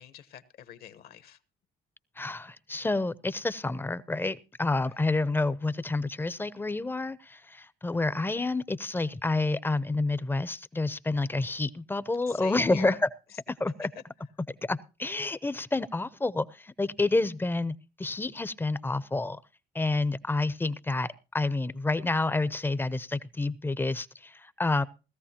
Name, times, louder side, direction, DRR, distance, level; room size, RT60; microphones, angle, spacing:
voice 1, 0.0-1.4 4.7-5.0 12.3-13.0 13.3-13.4 13.8-14.0, left 10 dB, 65° left, 1.1 m, -45 dB
voice 2, 2.2-12.9 13.6-13.9 14.6-19.4 19.7-24.8, left 2 dB, 10° left, 0.6 m, -29 dB
17.5 x 14.0 x 2.9 m
cardioid pair, 110°, 17 cm